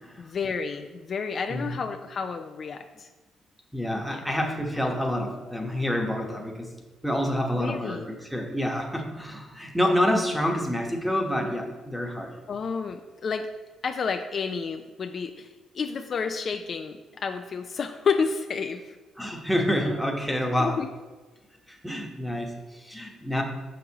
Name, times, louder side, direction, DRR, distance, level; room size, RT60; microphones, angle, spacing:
voice 1, 0.2-3.1 4.1-4.2 7.6-8.0 12.5-13.5 13.8-19.0 20.6-20.9, left 5 dB, 50° left, 6 dB, 0.3 m, -30 dB
voice 2, 3.7-6.7 7.0-12.3 19.2-20.8 21.7-23.4, equal, ahead, 0 dB, 1.0 m, -28 dB
6.6 x 6.3 x 2.9 m, 1.2 s
cardioid pair, 90°, 0 cm